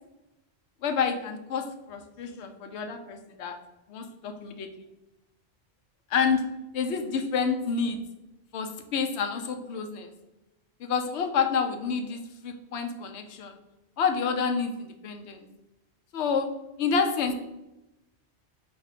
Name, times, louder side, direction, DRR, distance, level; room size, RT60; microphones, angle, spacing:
voice 1, 0.8-3.6 3.9-4.7 6.1-6.4 6.7-8.0 8.5-10.1 10.8-13.6 14.0-15.5 16.1-16.5 16.8-17.3, left 6 dB, 85° left, 7 dB, 0.9 m, -28 dB
4.9 x 2.6 x 4.1 m, 0.95 s
omnidirectional pair, 1.1 m